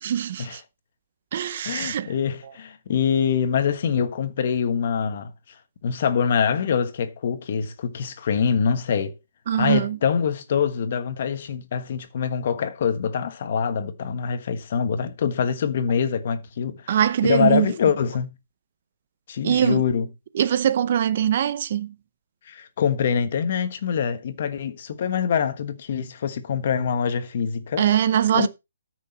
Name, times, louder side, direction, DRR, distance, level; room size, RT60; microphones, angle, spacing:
voice 1, 0.0-0.6 1.3-2.1 9.5-10.0 16.9-17.7 19.4-19.8 20.3-21.9 27.8-28.5, right 10 dB, 35° right, 0.6 m, -22 dB
voice 2, 1.6-5.3 5.8-9.2 9.6-18.3 19.3-20.1 22.5-27.9 28.3-28.5, left 7 dB, 40° left, 1.3 m, -24 dB
13.5 x 6.3 x 4.2 m
hypercardioid pair, 175°, 0 cm